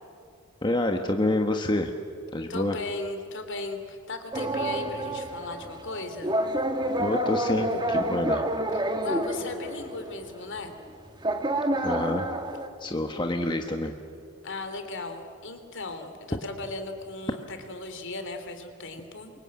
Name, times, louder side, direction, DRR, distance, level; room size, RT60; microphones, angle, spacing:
voice 1, 0.6-1.9 2.3-2.8 7.0-8.4 11.8-12.3 12.8-13.9, left 1 dB, 20° left, 4 dB, 1.2 m, -27 dB
voice 2, 2.5-6.4 9.0-10.8 14.4-19.3, left 3 dB, 55° left, 7 dB, 3.1 m, -37 dB
sound 1, 4.3-10.3 10.6-10.7 11.2-12.7, right 1 dB, 20° right, 2.0 m, -28 dB
28.0 x 24.0 x 8.7 m, 2.4 s
head